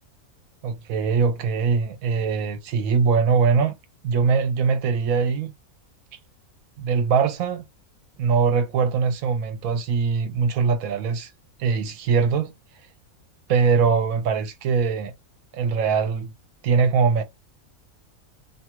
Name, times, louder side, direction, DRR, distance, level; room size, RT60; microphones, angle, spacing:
voice 1, 0.6-3.7 4.0-5.5 6.8-7.6 8.2-11.3 11.6-12.5 13.5-15.1 15.5-16.3 16.6-17.2, right 5 dB, 75° right, 1.1 m, -22 dB
2.7 x 2.3 x 2.9 m
omnidirectional pair, 1.5 m